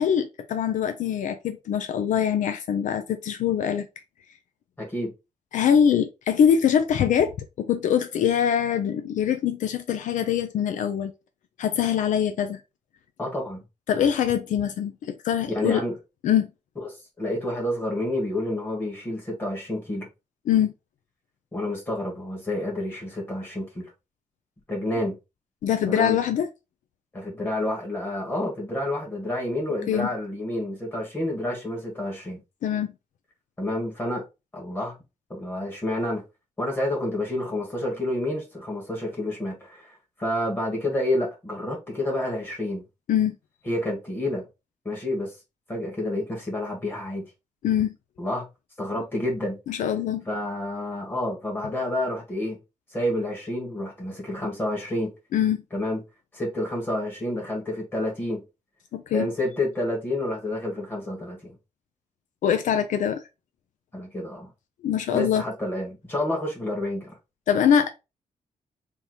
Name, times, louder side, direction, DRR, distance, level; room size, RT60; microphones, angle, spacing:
voice 1, 0.0-3.9 5.5-11.1 11.6-12.6 13.9-15.8 16.2-16.5 20.5-20.7 25.6-26.5 29.9-30.1 32.6-32.9 43.1-43.3 47.6-47.9 49.7-50.2 55.3-55.6 58.9-59.3 62.4-63.2 64.8-65.4 67.5-67.9, left 9 dB, 75° left, 0.5 m, -23 dB
voice 2, 4.8-5.1 13.2-13.6 15.5-15.9 16.8-16.9 17.2-20.1 21.5-23.9 24.7-25.1 25.9-26.2 27.1-32.4 33.6-34.2 34.5-35.0 35.3-36.2 36.6-42.8 43.6-44.5 44.8-45.3 45.7-47.2 48.2-48.5 48.8-49.6 50.2-52.6 52.9-55.1 55.7-56.0 56.3-58.4 59.1-61.5 63.9-64.5 65.1-67.2, left 1 dB, 15° left, 1.8 m, -29 dB
3.5 x 2.9 x 4.3 m
wide cardioid pair, 175°, 13 cm